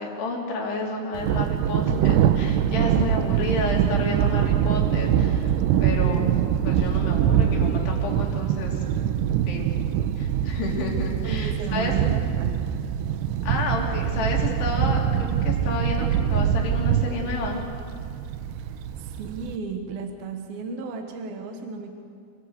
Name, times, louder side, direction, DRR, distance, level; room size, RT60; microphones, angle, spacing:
voice 1, 0.0-5.6 5.8-6.3 6.7-8.8 9.5-9.7 10.2-11.9 13.4-17.6, left 3 dB, 75° left, -1 dB, 5.2 m, -31 dB
Thunder, 1.2-19.6, right 9 dB, 80° right, 2.8 m, -23 dB
voice 2, 2.6-3.6 11.2-12.7 19.0-22.0, right 4 dB, 65° right, 4 dB, 3.0 m, -34 dB
27.5 x 18.5 x 8.0 m, 2.4 s
omnidirectional pair, 4.9 m